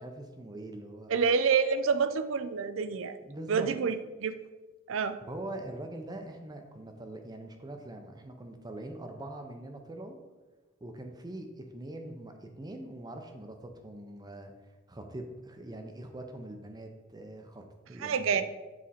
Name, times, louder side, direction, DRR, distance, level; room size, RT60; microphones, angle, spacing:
voice 1, 0.0-1.2 3.2-3.7 5.2-10.2 10.8-14.5 14.9-18.4, right 1 dB, 20° right, 5 dB, 0.6 m, -43 dB
voice 2, 1.1-3.2 3.5-4.3 4.9-5.2 18.0-18.4, right 5 dB, 65° right, 11 dB, 0.4 m, -27 dB
7.4 x 4.3 x 4.2 m, 1.2 s
head